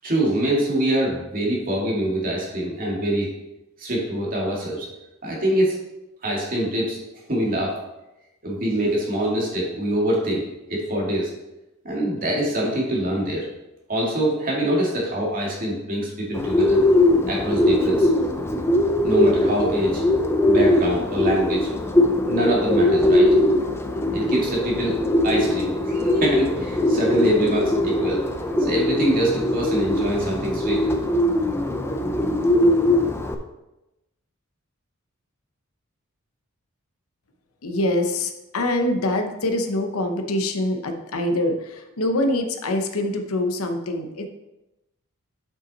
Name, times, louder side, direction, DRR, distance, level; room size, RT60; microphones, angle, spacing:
voice 1, 0.0-3.3 3.8-4.9 5.2-5.8 6.2-7.0 7.3-7.8 8.4-10.4 10.7-11.3 11.8-13.5 13.9-16.8 17.3-18.1 19.0-20.0 20.5-21.7 22.3-23.4 24.1-25.0 25.2-28.2 28.6-30.9, right 1 dB, 40° right, -3 dB, 2.1 m, -24 dB
Bird, 16.3-33.3, left 1 dB, 10° left, 0.5 m, -21 dB
voice 2, 37.6-44.3, left 1 dB, 80° left, 6 dB, 0.9 m, -24 dB
7.2 x 5.7 x 4.1 m, 0.95 s
head